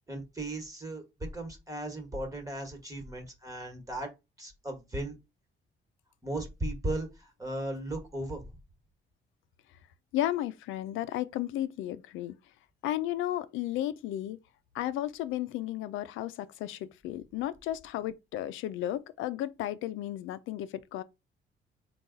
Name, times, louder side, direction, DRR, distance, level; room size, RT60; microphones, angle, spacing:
voice 1, 0.1-4.1 4.4-5.1 6.2-8.5, right 1 dB, 15° right, 1.4 m, -36 dB
voice 2, 10.1-12.4 12.8-14.4 14.7-21.0, left 13 dB, 90° left, 0.4 m, -33 dB
3.8 x 2.3 x 3.8 m
cardioid pair, 90°, 20 cm